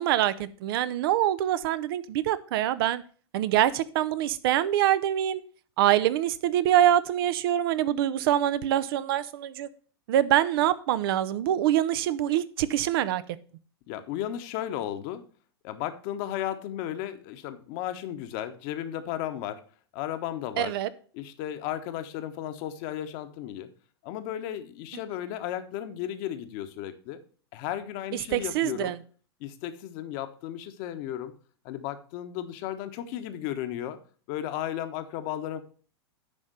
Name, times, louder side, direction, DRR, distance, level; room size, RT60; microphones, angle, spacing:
voice 1, 0.0-3.0 3.3-5.4 5.8-9.7 10.1-13.2 20.6-20.9 28.3-29.0, right 12 dB, 60° right, 16 dB, 0.7 m, -25 dB
voice 2, 13.9-15.2 15.6-19.6 19.9-20.8 21.1-23.7 24.0-27.2 27.5-29.0 29.4-31.3 31.6-34.0 34.3-35.6, left 11 dB, 50° left, 9 dB, 1.2 m, -34 dB
10.0 x 3.6 x 6.8 m, 0.41 s
hypercardioid pair, 105°, 14 cm